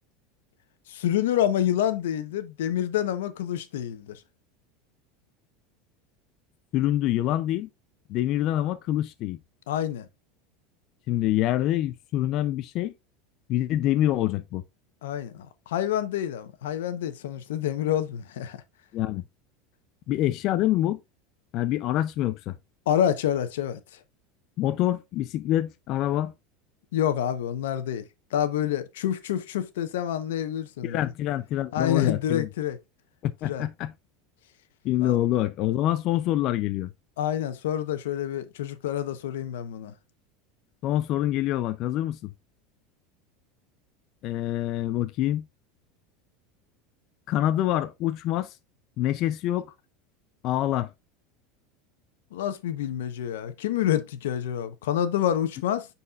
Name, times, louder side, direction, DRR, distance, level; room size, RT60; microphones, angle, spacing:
voice 1, 0.9-4.2 9.7-10.1 15.0-18.6 22.9-23.8 26.9-28.0 28.3-31.0 31.7-32.8 33.4-33.6 35.0-35.2 37.2-39.9 52.3-55.9, left 10 dB, 90° left, 0.8 m, -27 dB
voice 2, 6.7-7.7 8.1-9.4 11.1-12.9 13.5-14.6 18.9-19.2 20.1-21.0 21.5-22.6 24.6-26.3 30.8-32.5 33.2-33.9 34.8-36.9 40.8-42.3 44.2-45.5 47.3-48.6 49.0-49.7 50.4-50.9, left 13 dB, 50° left, 0.4 m, -26 dB
9.4 x 4.2 x 2.4 m
supercardioid pair, 125°, 0 cm